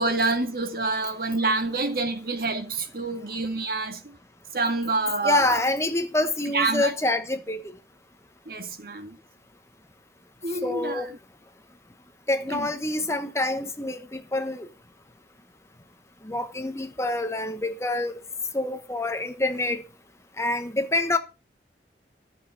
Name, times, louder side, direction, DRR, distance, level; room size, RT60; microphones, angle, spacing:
voice 1, 0.0-4.2 4.5-5.6 6.5-6.9 8.5-9.2 10.4-11.0 12.5-12.7, right 3 dB, 55° right, 2.1 m, -27 dB
voice 2, 5.2-7.6 10.6-11.1 12.3-14.7 16.2-18.2 18.5-19.8 20.4-21.2, left 2 dB, 15° left, 1.1 m, -26 dB
14.0 x 7.0 x 6.3 m
head